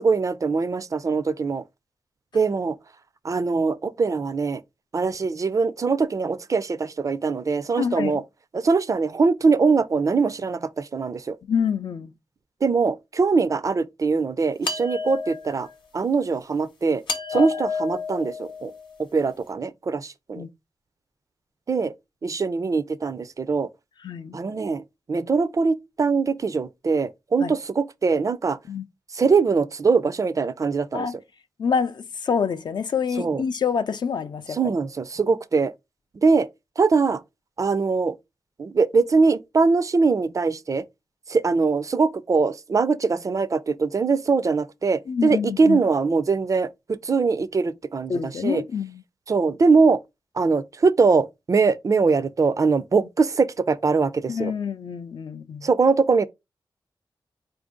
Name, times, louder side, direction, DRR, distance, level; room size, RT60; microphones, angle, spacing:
voice 1, 0.0-1.6 2.3-2.8 3.2-4.6 4.9-8.2 8.5-11.4 12.6-15.7 15.9-17.0 17.3-18.7 19.0-20.5 21.7-21.9 22.2-23.7 24.3-24.8 25.1-28.6 29.1-31.1 33.2-33.4 34.5-35.7 36.2-36.5 36.8-37.2 37.6-38.2 38.6-40.8 41.3-48.6 49.3-50.0 50.4-54.5 55.6-56.3, right 4 dB, 45° right, 0.4 m, -22 dB
voice 2, 7.8-8.2 11.5-12.1 17.3-17.5 20.4-20.5 24.0-24.4 27.4-27.5 28.7-28.9 30.9-31.2 31.6-34.7 45.1-45.8 48.1-49.0 54.3-55.7, left 6 dB, 65° left, 0.4 m, -27 dB
sound 1, 14.6-15.7 17.1-19.0, left 4 dB, 90° left, 0.9 m, -30 dB
4.4 x 2.5 x 3.5 m
wide cardioid pair, 75°, 8 cm